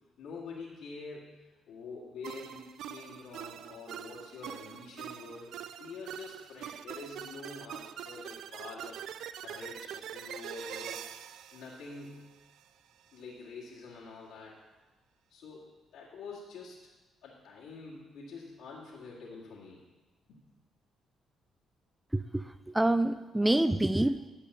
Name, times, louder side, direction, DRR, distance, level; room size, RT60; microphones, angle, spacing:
voice 1, 0.2-1.3 1.7-5.5 5.8-9.0 9.4-11.0 11.5-12.2 13.1-14.6 15.3-16.8 17.2-19.8 20.3-20.4, left 4 dB, 85° left, -7 dB, 2.2 m, -46 dB
sound 1, 2.2-12.6, right 10 dB, 80° right, 0.4 m, -44 dB
voice 2, 22.1-24.3, right 1 dB, 10° right, 12 dB, 0.4 m, -27 dB
12.0 x 5.3 x 6.7 m, 1.2 s
cardioid pair, 90°, 0 cm